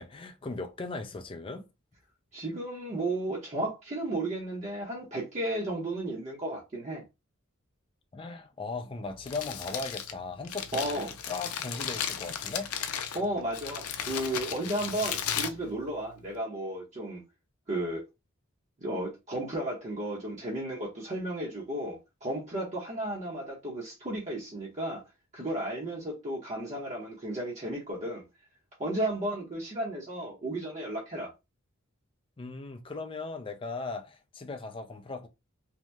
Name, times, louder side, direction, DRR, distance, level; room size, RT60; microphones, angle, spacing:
voice 1, 0.0-1.7 8.1-12.7 32.4-35.3, left 3 dB, 25° left, 0.4 m, -38 dB
voice 2, 2.3-7.0 10.7-11.1 13.1-17.2 17.7-18.0 18.8-25.0 25.3-28.2 28.8-31.3, right 1 dB, 35° right, 0.8 m, -33 dB
Crumpling crinkling, 9.1-16.4, left 8 dB, 80° left, 0.5 m, -36 dB
2.7 x 2.0 x 3.3 m
head